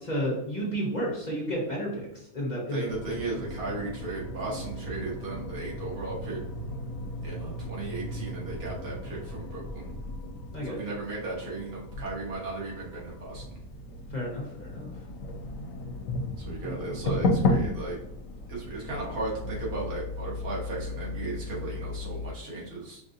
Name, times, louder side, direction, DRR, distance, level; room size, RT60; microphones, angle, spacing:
voice 1, 0.1-2.9 10.5-10.8 14.1-14.9 16.6-16.7, equal, 35° left, -3 dB, 1.0 m, -31 dB
voice 2, 2.7-6.4 7.2-9.9 10.6-13.4 16.4-18.0 18.5-23.0, right 3 dB, 85° right, -5 dB, 1.8 m, -36 dB
sound 1, 2.9-22.3, left 2 dB, 70° left, 1.1 m, -34 dB
5.3 x 2.7 x 2.6 m, 0.81 s
omnidirectional pair, 1.5 m